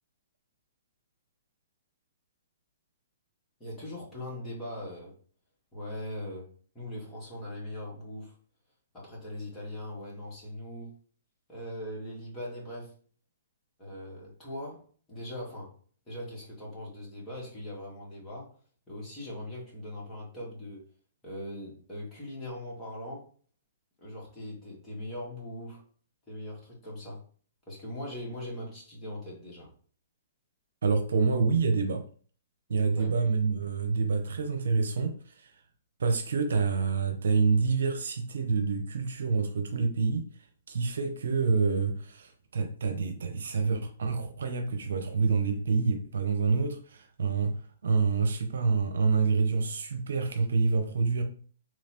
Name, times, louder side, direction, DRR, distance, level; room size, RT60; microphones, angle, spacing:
voice 1, 3.6-5.1 5.7-8.3 8.9-10.9 11.5-12.9 13.8-15.7 16.1-18.5 18.9-20.8 21.2-23.3 24.0-25.8 26.3-27.2 27.7-29.7 33.0-33.1, left 1 dB, 15° left, -5 dB, 2.0 m, -40 dB
voice 2, 30.8-32.0 32.7-35.1 36.0-40.2 40.7-47.5 47.8-51.2, right 4 dB, 75° right, 6 dB, 0.7 m, -27 dB
3.8 x 3.1 x 2.9 m, 0.43 s
hypercardioid pair, 145°, 0 cm